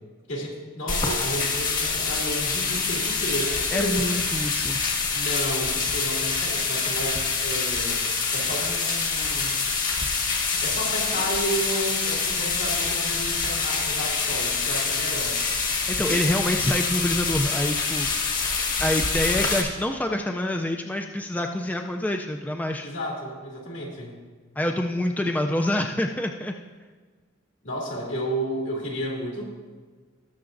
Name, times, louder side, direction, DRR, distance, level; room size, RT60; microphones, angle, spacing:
voice 1, 0.3-4.2 5.1-8.0 8.3-9.5 10.6-15.4 22.8-24.1 27.6-29.4, equal, 70° left, -3 dB, 2.5 m, -32 dB
sound 1, 0.9-19.6, left 4 dB, 40° left, 1.5 m, -26 dB
voice 2, 3.7-4.8 15.9-18.1 18.8-22.9 24.6-26.5, left 1 dB, 10° left, 3 dB, 0.3 m, -26 dB
19.5 x 6.7 x 2.6 m, 1.4 s
head